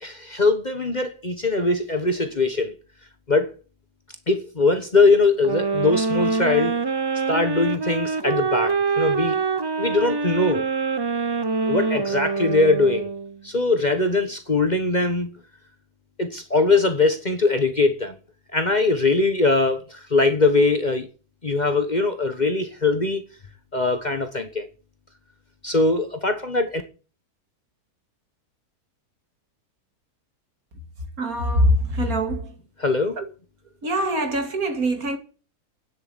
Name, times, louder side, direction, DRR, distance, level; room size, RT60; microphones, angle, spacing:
voice 1, 0.0-2.7 3.3-3.5 4.3-6.7 7.3-9.4 9.8-10.6 11.6-13.1 13.4-15.3 16.2-18.2 18.5-21.1 21.4-23.2 23.7-24.7 25.6-26.8 32.8-33.2, left 3 dB, 30° left, 1.3 m, -21 dB
sound 1, 5.4-13.4, right 4 dB, 40° right, 0.3 m, -25 dB
voice 2, 31.2-32.6 33.2-33.3 33.8-35.2, equal, 65° right, 2.6 m, -23 dB
9.9 x 8.0 x 9.7 m
omnidirectional pair, 1.7 m